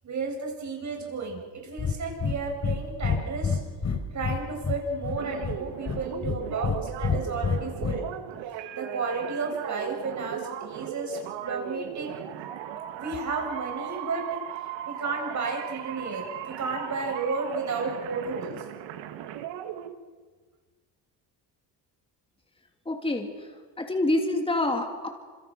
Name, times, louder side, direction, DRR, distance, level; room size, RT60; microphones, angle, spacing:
voice 1, 0.0-3.6 4.1-8.0 8.7-12.2 12.9-14.4 14.9-18.5, right 4 dB, 40° right, 1 dB, 7.5 m, -32 dB
Breathing, 1.8-2.8 3.0-4.4 4.6-5.6 5.9-6.8 7.0-7.9, left 6 dB, 40° left, 4.1 m, -27 dB
sound 1, 5.2-19.9, right 10 dB, 85° right, 1.8 m, -38 dB
voice 2, 22.8-23.3 23.8-25.1, left 2 dB, 15° left, 3 dB, 3.1 m, -26 dB
28.0 x 27.0 x 6.5 m, 1.5 s
cardioid pair, 100°, 42 cm